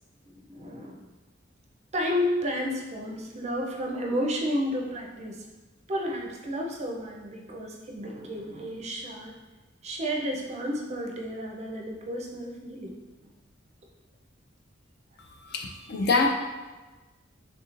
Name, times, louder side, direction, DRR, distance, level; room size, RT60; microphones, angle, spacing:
voice 1, 0.3-1.1 1.9-5.5 5.9-9.3 9.8-13.0, equal, 35° right, 0 dB, 0.4 m, -32 dB
voice 2, 15.3-16.3, left 3 dB, 60° left, 3 dB, 0.4 m, -25 dB
3.6 x 3.0 x 2.4 m, 1.2 s
head